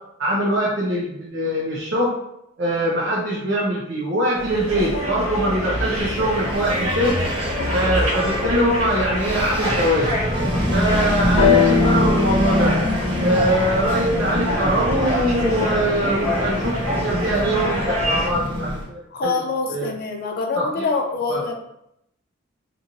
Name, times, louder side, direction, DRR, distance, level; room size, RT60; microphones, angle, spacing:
voice 1, 0.2-2.1 2.6-7.1 7.7-10.2 10.7-12.8 13.2-19.3 19.7-19.9 20.6-20.8 21.3-21.4, right 1 dB, 60° right, -6 dB, 0.6 m, -22 dB
sound 1, 4.4-18.3, equal, 90° right, 0.8 m, -26 dB
Engine, 5.9-18.9, equal, 25° right, 0.7 m, -26 dB
sound 2, 11.4-15.2 16.1-16.2, left 8 dB, 90° left, 0.6 m, -24 dB
voice 2, 19.1-21.5, left 4 dB, 45° left, 4 dB, 0.3 m, -25 dB
2.9 x 2.5 x 2.5 m, 0.80 s
head